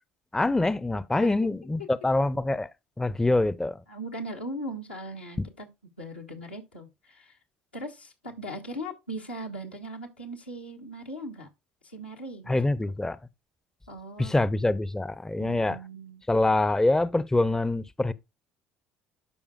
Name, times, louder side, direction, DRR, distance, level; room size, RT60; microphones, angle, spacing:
voice 1, 0.3-2.7 3.0-3.8 5.4-5.5 12.5-13.2 14.2-15.8 16.3-18.1, left 2 dB, 10° left, 0.5 m, -25 dB
voice 2, 3.9-5.7 6.0-7.4 7.7-11.5 11.8-12.6 13.9-14.3 15.4-16.2, right 1 dB, 90° left, 1.3 m, -39 dB
12.0 x 4.9 x 2.4 m
figure-of-eight pair, 55°, 6 cm